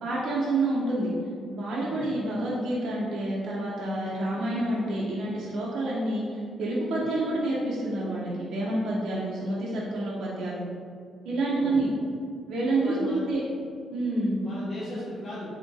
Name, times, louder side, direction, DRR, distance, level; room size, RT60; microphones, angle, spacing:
voice 1, 0.0-1.1 1.5-10.7 11.2-11.9 12.5-13.4 13.9-14.4, right 2 dB, 70° right, -6 dB, 0.7 m, -28 dB
voice 2, 12.8-13.3 14.4-15.5, left 1 dB, 45° left, -9 dB, 1.0 m, -37 dB
3.6 x 2.6 x 3.8 m, 2.3 s
cardioid pair, 90°, 0 cm